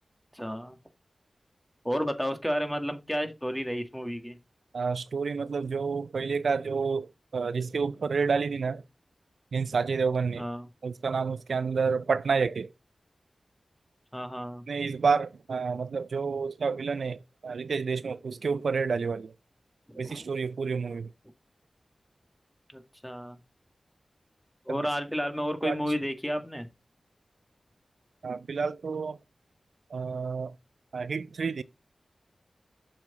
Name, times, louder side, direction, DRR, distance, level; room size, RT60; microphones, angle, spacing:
voice 1, 0.3-0.8 1.8-4.4 10.4-10.7 14.1-14.7 19.9-20.3 22.7-23.4 24.7-26.7, equal, 5° left, 1.9 m, -32 dB
voice 2, 4.7-8.8 9.5-10.5 10.8-12.7 14.7-19.3 20.0-21.1 24.7-24.8 25.6-25.8 28.2-29.2 29.9-30.5 30.9-31.6, right 5 dB, 85° right, 0.4 m, -29 dB
7.1 x 5.8 x 4.1 m
cardioid pair, 50°, 0 cm